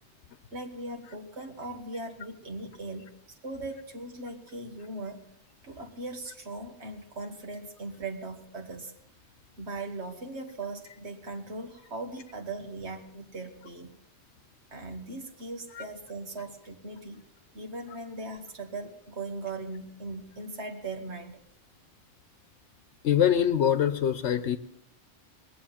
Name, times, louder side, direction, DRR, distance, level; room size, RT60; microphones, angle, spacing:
voice 1, 0.5-5.2 5.6-8.9 9.6-13.9 14.7-17.2 17.5-21.4, right 2 dB, 75° right, 4 dB, 1.8 m, -39 dB
voice 2, 23.0-24.6, left 9 dB, 80° left, 11 dB, 1.0 m, -24 dB
20.0 x 7.7 x 7.3 m, 0.76 s
omnidirectional pair, 1.2 m